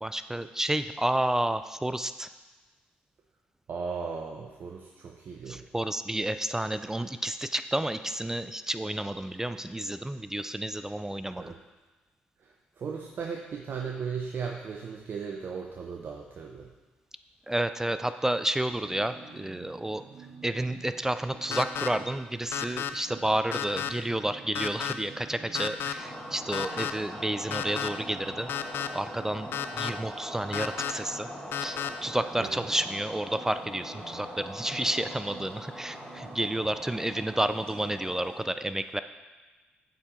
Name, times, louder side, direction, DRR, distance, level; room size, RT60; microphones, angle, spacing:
voice 1, 0.0-2.3 5.5-11.5 17.5-20.0 20.4-28.5 28.9-31.3 31.6-39.0, right 1 dB, 10° right, 11 dB, 0.3 m, -30 dB
voice 2, 3.7-5.7 11.4-11.6 12.4-16.7 32.4-32.5, right 5 dB, 55° right, 1 dB, 0.6 m, -36 dB
sound 1, 18.8-38.2, right 5 dB, 85° right, 2.5 m, -50 dB
sound 2, 21.5-21.9 22.5-22.9 23.5-23.9 24.5-24.9 25.5-25.9 26.5-26.9 27.5-27.9 28.5-28.9 29.5-29.9 30.5-30.9 31.5-31.9, left 10 dB, 65° left, 0.4 m, -31 dB
sound 3, 25.9-38.4, equal, 20° left, 1.9 m, -42 dB
8.9 x 4.4 x 3.8 m, 1.2 s
hypercardioid pair, 50°, 4 cm